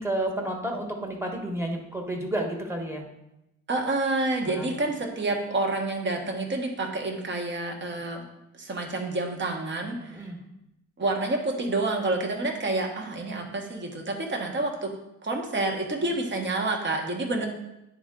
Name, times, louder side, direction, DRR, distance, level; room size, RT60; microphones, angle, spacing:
voice 1, 0.0-3.0 4.4-4.7 10.1-10.4, right 1 dB, 10° right, 1 dB, 1.3 m, -31 dB
voice 2, 3.7-8.2 8.6-10.3 11.0-14.9 15.2-17.5, right 2 dB, 40° right, 3 dB, 1.3 m, -28 dB
9.8 x 3.6 x 3.7 m, 0.88 s
cardioid pair, 90°, 30 cm